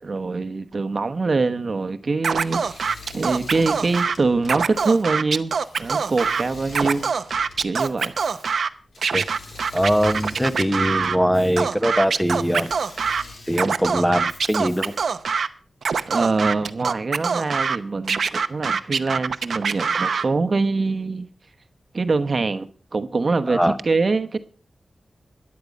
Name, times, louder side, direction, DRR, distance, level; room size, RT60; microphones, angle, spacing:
voice 1, 0.0-7.1 7.6-8.1 16.1-21.3 21.9-23.6 23.8-24.4, right 3 dB, 55° right, 1.0 m, -24 dB
Scratching (performance technique), 2.2-4.1 4.4-6.4 6.7-8.7 9.0-11.2 11.6-13.2 13.5-15.5 15.8-17.8 18.1-20.3, right 5 dB, 85° right, 0.7 m, -24 dB
Engine / Mechanisms, 2.4-15.2, left 3 dB, 80° left, 3.1 m, -45 dB
voice 2, 9.7-12.7 13.5-14.9 19.9-20.1 23.5-23.8, equal, ahead, 1.0 m, -21 dB
13.5 x 10.5 x 5.3 m
wide cardioid pair, 75°, 0 cm